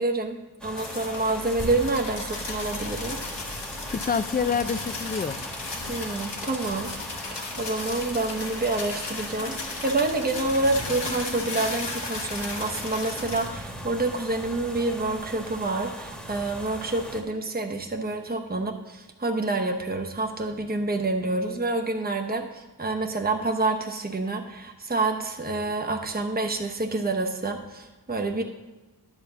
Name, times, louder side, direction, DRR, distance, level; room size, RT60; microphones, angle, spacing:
voice 1, 0.0-3.2 5.9-6.9 7.6-28.4, right 2 dB, 20° right, 3 dB, 0.9 m, -28 dB
sound 1, 0.6-17.2, equal, ahead, 1.3 m, -39 dB
sound 2, 0.8-13.5, left 3 dB, 80° left, 1.3 m, -36 dB
voice 2, 3.9-5.4, left 6 dB, 25° left, 14 dB, 0.4 m, -27 dB
11.0 x 4.2 x 7.1 m, 1.1 s
wide cardioid pair, 45°, 41 cm